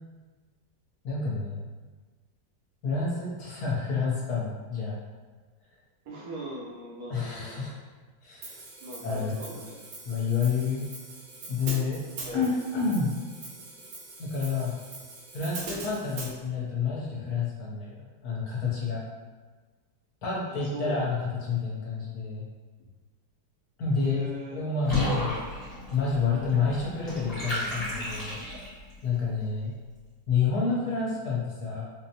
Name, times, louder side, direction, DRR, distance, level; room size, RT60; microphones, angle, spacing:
voice 1, 1.0-1.6 2.8-5.0 7.1-7.7 8.2-8.6 9.0-9.4 10.0-10.8 11.5-12.0 12.3-13.1 14.2-14.7 15.3-19.0 20.2-21.2 21.5-22.5 23.8-24.2 24.5-25.4 25.9-28.4 29.0-29.7 30.3-31.8, left 5 dB, 60° left, -6 dB, 1.4 m, -29 dB
voice 2, 6.0-7.7 8.8-9.8 12.2-12.6 20.5-21.1 23.9-24.6, right 1 dB, 65° right, -4 dB, 1.2 m, -39 dB
Hi-hat, 8.4-16.3, right 3 dB, 90° right, 1.4 m, -42 dB
Water / Bathtub (filling or washing), 24.8-28.9, left 1 dB, 25° left, 1.1 m, -33 dB
4.1 x 2.2 x 2.9 m, 1.4 s
omnidirectional pair, 2.0 m